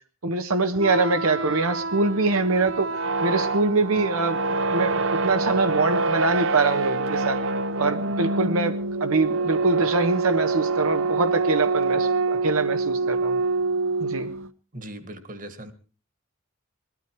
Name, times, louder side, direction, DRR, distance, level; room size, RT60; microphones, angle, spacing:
voice 1, 0.2-2.9 3.2-7.4 7.8-13.4 14.0-14.3, right 3 dB, 85° right, 8 dB, 1.3 m, -24 dB
sound 1, 0.7-14.5, right 3 dB, 65° right, 0.8 m, -26 dB
voice 2, 14.7-15.7, right 1 dB, 40° right, 10 dB, 1.8 m, -39 dB
21.0 x 13.0 x 4.7 m, 0.37 s
head